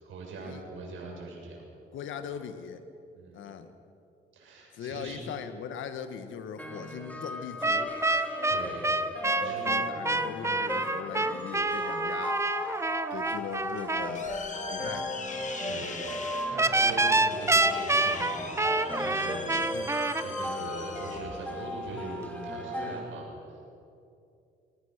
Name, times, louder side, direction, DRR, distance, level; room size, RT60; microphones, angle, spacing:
voice 1, 0.0-1.6 3.1-3.5 4.3-5.2 8.5-9.8 15.5-19.5 19.7-23.5, right 2 dB, 75° right, -1 dB, 7.3 m, -41 dB
voice 2, 1.9-2.8 3.3-3.7 4.7-8.0 9.2-12.5 13.1-14.3 14.7-15.1 15.6-15.9 19.7-19.9, left 7 dB, 80° left, 9 dB, 1.7 m, -40 dB
sound 1, 6.6-23.0, left 1 dB, 5° left, 3.3 m, -37 dB
sound 2, 7.6-14.1 16.6-20.2, right 2 dB, 15° right, 0.9 m, -27 dB
sound 3, 13.5-22.6, left 4 dB, 40° left, 2.3 m, -42 dB
22.5 x 19.0 x 6.7 m, 2.6 s
cardioid pair, 90°, 20 cm